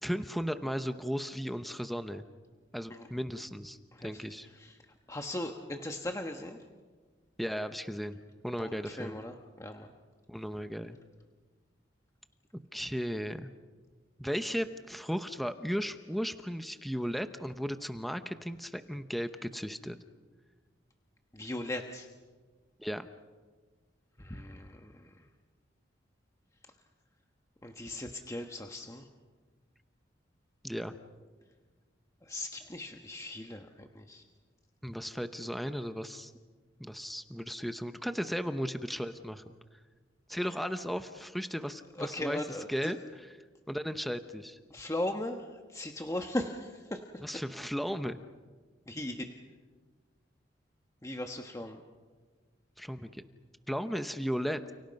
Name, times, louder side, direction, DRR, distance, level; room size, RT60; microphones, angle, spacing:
voice 1, 0.0-2.2 2.7-4.5 7.4-8.2 8.4-9.2 10.3-11.0 12.7-13.5 14.2-20.0 22.8-23.1 30.6-30.9 34.8-36.3 36.8-39.5 40.3-43.4 43.7-44.6 47.2-48.2 52.8-53.2 53.7-54.7, equal, ahead, 9 dB, 0.8 m, -35 dB
voice 2, 3.9-4.2 4.6-4.7 5.1-6.6 8.6-9.9 21.3-22.1 24.2-25.1 27.6-29.1 32.3-34.2 42.0-42.9 44.7-45.4 45.7-47.0 48.9-49.3 51.0-51.8, left 1 dB, 15° left, 4 dB, 1.2 m, -38 dB
30.0 x 30.0 x 5.3 m, 1.4 s
head